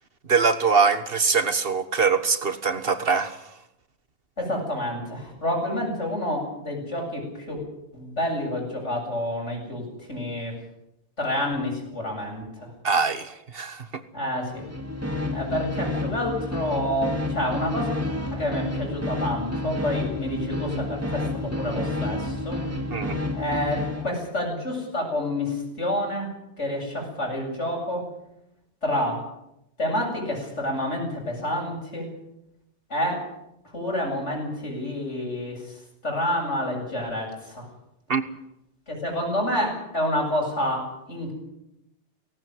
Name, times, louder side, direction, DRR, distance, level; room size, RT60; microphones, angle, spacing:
voice 1, 0.3-3.4 12.8-13.9 22.9-23.2 38.1-38.2, right 5 dB, 55° right, 1.5 m, -23 dB
voice 2, 4.4-7.6 7.9-10.5 11.2-12.7 14.1-14.7 15.3-17.9 18.3-22.6 23.3-26.3 26.6-28.1 28.8-29.2 29.8-32.1 32.9-33.3 33.7-35.7 36.0-37.7 38.9-41.3, left 1 dB, 85° left, 8.4 m, -28 dB
sound 1, 14.5-24.1, left 1 dB, 10° right, 2.5 m, -30 dB
18.5 x 18.0 x 9.6 m
omnidirectional pair, 1.2 m